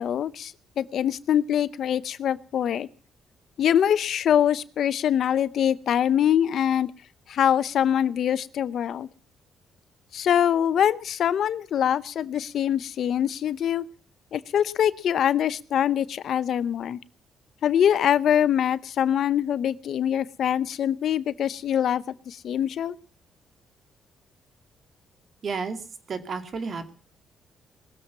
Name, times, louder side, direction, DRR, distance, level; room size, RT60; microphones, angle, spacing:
voice 1, 0.0-2.9 3.6-6.9 7.3-9.1 10.1-13.9 14.3-17.0 17.6-23.0, left 9 dB, 65° left, 17 dB, 0.7 m, -24 dB
voice 2, 25.4-26.9, right 5 dB, 50° right, 9 dB, 2.4 m, -32 dB
20.0 x 7.5 x 8.3 m, 0.42 s
cardioid pair, 90°, 0 cm